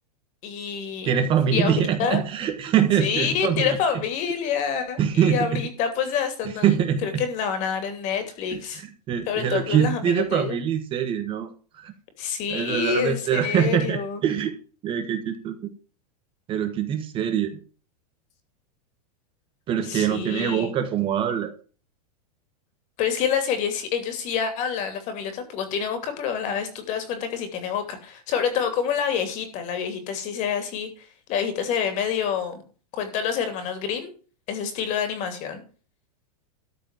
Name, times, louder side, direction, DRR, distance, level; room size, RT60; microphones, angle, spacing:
voice 1, 0.4-1.1 1.5-1.7 2.0-2.2 3.0-8.8 9.3-10.6 12.2-14.2 19.8-20.7 23.0-32.6 32.9-34.1 34.5-35.6, left 7 dB, 35° left, 8 dB, 3.1 m, -27 dB
voice 2, 1.0-3.7 5.0-5.6 6.6-7.2 9.1-11.5 11.8-11.9 12.5-14.5 14.8-15.5 16.5-17.6 19.7-21.5, right 8 dB, 25° right, 7 dB, 1.3 m, -23 dB
13.0 x 5.1 x 7.6 m, 0.39 s
supercardioid pair, 150°, 20 cm